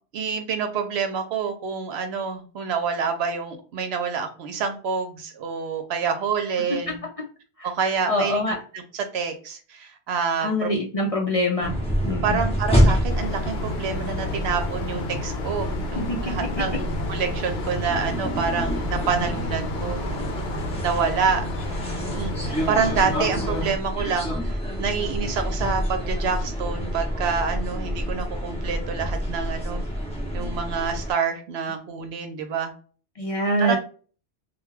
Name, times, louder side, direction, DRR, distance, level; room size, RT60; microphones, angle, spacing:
voice 1, 0.1-7.0 7.6-10.7 12.2-20.0 20.8-29.9 30.3-32.7 33.6-33.8, right 6 dB, 70° right, 6 dB, 0.9 m, -27 dB
voice 2, 8.1-8.6 10.4-11.7 12.0-12.4 16.0-16.3 33.2-33.8, left 1 dB, 45° left, -1 dB, 0.4 m, -24 dB
sound 1, 11.6-31.1, equal, 5° left, 0.6 m, -28 dB
sound 2, 13.1-23.7, left 1 dB, 70° left, 0.8 m, -31 dB
2.3 x 2.2 x 3.1 m, 0.40 s
omnidirectional pair, 1.1 m